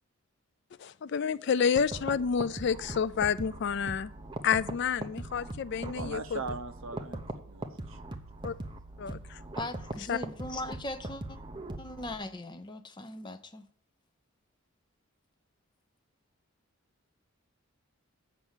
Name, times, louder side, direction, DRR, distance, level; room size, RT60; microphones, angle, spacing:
voice 1, 0.8-4.1 4.4-6.4 8.4-8.5 9.0-9.4 10.1-10.2, left 6 dB, 50° left, 17 dB, 0.3 m, -29 dB
sound 1, 1.8-12.2, right 1 dB, 20° right, 0.8 m, -41 dB
voice 2, 5.8-8.2, right 3 dB, 65° right, 11 dB, 0.7 m, -40 dB
voice 3, 9.6-11.4 11.8-13.6, left 1 dB, 20° left, 8 dB, 0.6 m, -39 dB
7.9 x 6.0 x 7.2 m, 0.65 s
head